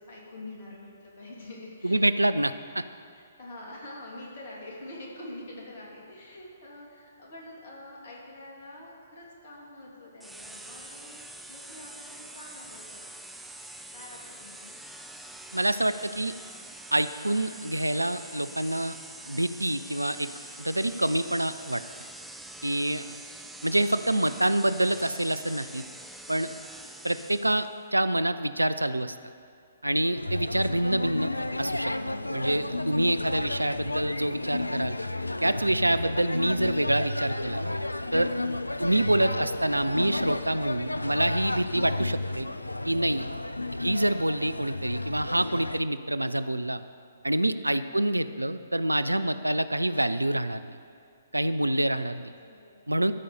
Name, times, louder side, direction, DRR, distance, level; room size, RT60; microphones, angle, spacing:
voice 1, 0.0-2.1 3.1-13.0 13.9-14.7 24.1-24.4 43.6-43.9 47.8-48.1 52.4-52.9, left 1 dB, 50° left, -3 dB, 3.0 m, -46 dB
voice 2, 1.8-2.8 15.5-16.3 16.9-19.0 19.3-20.3 20.6-21.8 22.6-23.2 23.6-25.8 26.3-26.5 27.0-29.2 29.8-31.3 31.6-35.0 35.4-37.6 38.1-38.3 38.8-42.5 42.8-43.3 43.8-46.8 47.2-50.7 51.3-52.3 52.9-53.1, right 1 dB, 85° right, 13 dB, 0.4 m, -26 dB
sound 1, 10.2-27.8, right 1 dB, ahead, 0.5 m, -45 dB
sound 2, 30.2-45.8, left 2 dB, 85° left, 0.4 m, -32 dB
13.5 x 5.4 x 6.6 m, 2.4 s
figure-of-eight pair, 125°, 0 cm